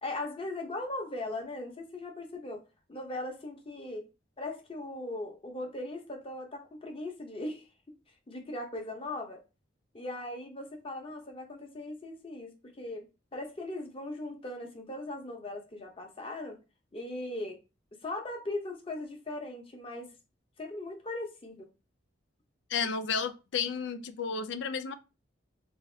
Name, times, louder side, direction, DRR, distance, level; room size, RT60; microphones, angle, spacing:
voice 1, 0.0-2.6 2.9-4.1 4.4-7.7 8.3-9.4 9.9-13.1 13.3-16.6 16.9-17.6 18.0-20.1 20.6-21.7, left 2 dB, 30° left, 0.8 m, -39 dB
voice 2, 22.7-25.0, left 6 dB, 65° left, 0.4 m, -32 dB
3.4 x 2.7 x 3.3 m
head